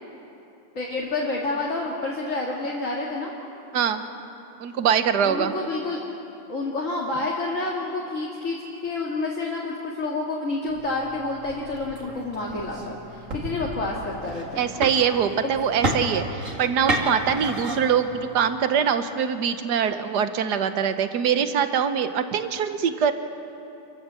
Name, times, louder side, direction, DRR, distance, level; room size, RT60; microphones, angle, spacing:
voice 1, 0.8-3.3 5.2-6.0 6.5-14.6, left 2 dB, 40° left, -3 dB, 2.3 m, -29 dB
voice 2, 4.6-5.5 14.6-23.1, right 7 dB, 65° right, 9 dB, 1.5 m, -23 dB
sound 1, 10.7-18.6, right 1 dB, 40° right, 2.5 m, -32 dB
27.5 x 15.0 x 7.5 m, 2.9 s
omnidirectional pair, 2.1 m